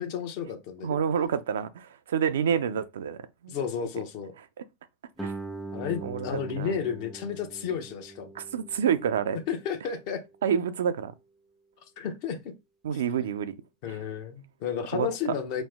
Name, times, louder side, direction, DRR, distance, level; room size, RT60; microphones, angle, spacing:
voice 1, 0.0-1.0 3.5-4.3 5.7-8.3 9.5-10.2 12.0-12.4 12.9-13.0 13.8-15.6, left 7 dB, 60° left, 0.8 m, -32 dB
voice 2, 0.8-3.5 5.2-5.3 6.0-6.3 6.6-6.7 8.4-9.4 10.4-11.1 12.8-13.5 14.9-15.1, right 8 dB, 80° right, 0.3 m, -28 dB
Guitar, 5.2-10.5, right 3 dB, ahead, 0.4 m, -42 dB
3.0 x 2.0 x 3.4 m
hypercardioid pair, 100°, 0 cm